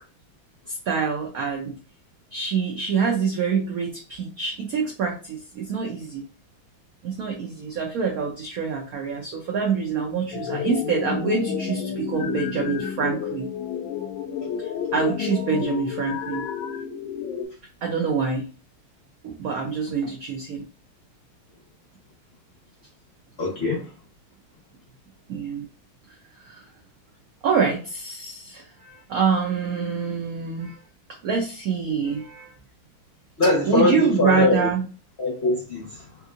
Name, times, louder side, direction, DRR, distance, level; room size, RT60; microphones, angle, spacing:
voice 1, 0.7-1.7 2.3-6.2 7.0-13.5 14.9-16.5 17.8-18.5 19.2-20.6 25.3-25.7 26.4-26.6 27.4-30.8 31.2-32.5 33.6-34.8, right 5 dB, 80° right, 0.8 m, -26 dB
sound 1, 10.3-17.5, left 7 dB, 75° left, 1.3 m, -30 dB
voice 2, 23.4-23.9 33.4-34.7 35.2-36.1, left 2 dB, 55° left, 0.7 m, -22 dB
3.5 x 3.0 x 2.4 m
omnidirectional pair, 2.3 m